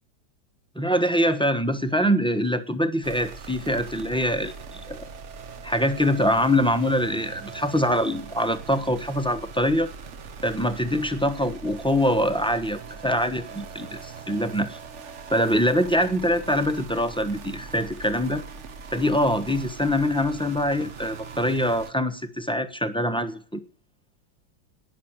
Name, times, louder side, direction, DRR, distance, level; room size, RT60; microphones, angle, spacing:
voice 1, 0.7-5.0 5.6-9.9 10.4-14.8 15.3-18.4 18.9-23.6, equal, 5° left, 9 dB, 0.6 m, -24 dB
sound 1, 3.0-21.9, right 5 dB, 45° right, 1.0 m, -41 dB
19.0 x 6.4 x 8.9 m, 0.43 s
omnidirectional pair, 2.2 m